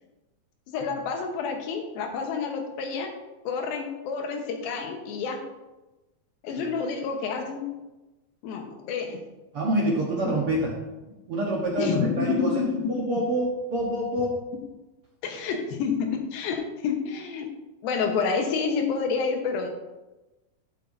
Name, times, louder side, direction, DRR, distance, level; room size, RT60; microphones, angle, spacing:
voice 1, 0.7-3.1 3.4-5.4 6.4-7.6 8.4-9.2 10.2-10.4 11.8-12.9 15.2-17.5 17.8-19.7, left 5 dB, 75° left, 3 dB, 2.9 m, -28 dB
voice 2, 9.5-10.7 11.0-12.6 13.0-14.4, right 1 dB, 65° right, -2 dB, 1.4 m, -27 dB
12.0 x 8.1 x 2.7 m, 1.1 s
omnidirectional pair, 4.3 m